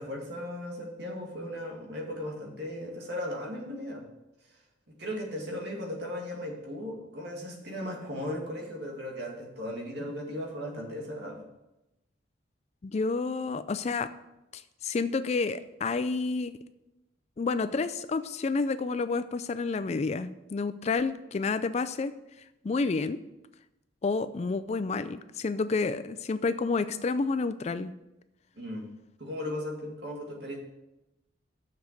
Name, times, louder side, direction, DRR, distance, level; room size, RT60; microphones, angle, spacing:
voice 1, 0.0-4.1 4.9-11.4 28.5-28.9 29.2-30.6, left 1 dB, 60° right, 0 dB, 2.1 m, -37 dB
voice 2, 12.8-14.1 14.5-16.5 17.4-22.1 22.6-23.2 24.0-27.9, left 4 dB, 35° left, 13 dB, 0.3 m, -29 dB
7.0 x 6.6 x 6.6 m, 0.94 s
head